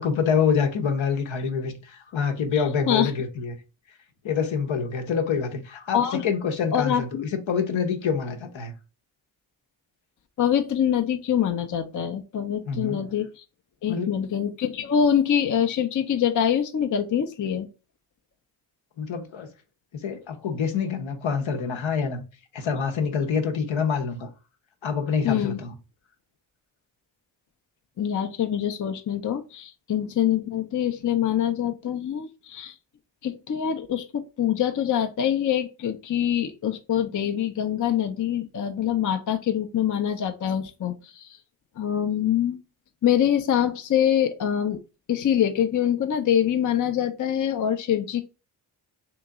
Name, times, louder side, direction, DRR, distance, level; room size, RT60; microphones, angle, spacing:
voice 1, 0.0-3.6 4.2-8.7 12.7-13.1 13.9-14.2 19.0-19.5 19.9-22.2 22.5-24.3 24.8-25.7, left 6 dB, 65° left, 0.9 m, -26 dB
voice 2, 2.5-3.1 5.9-6.2 6.7-7.2 10.4-13.4 13.8-17.7 25.2-25.6 28.0-32.8 33.2-41.4 41.8-42.6 43.0-44.8 45.1-48.2, left 9 dB, 40° left, 0.6 m, -25 dB
3.0 x 2.9 x 3.5 m
supercardioid pair, 40°, 50 cm